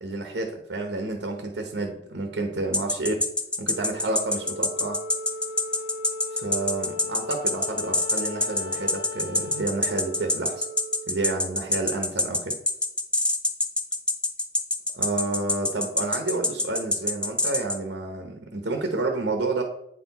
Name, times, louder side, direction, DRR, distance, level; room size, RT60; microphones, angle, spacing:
voice 1, 0.0-3.1 3.6-5.0 6.3-10.7 11.1-12.6 14.9-19.6, right 3 dB, 65° right, 4 dB, 0.9 m, -30 dB
sound 1, 2.7-17.8, left 2 dB, 5° left, 0.5 m, -25 dB
Wind instrument woodwind instrument, 3.7-12.2, left 1 dB, 50° left, 1.2 m, -38 dB
8.6 x 4.5 x 4.1 m, 0.79 s
head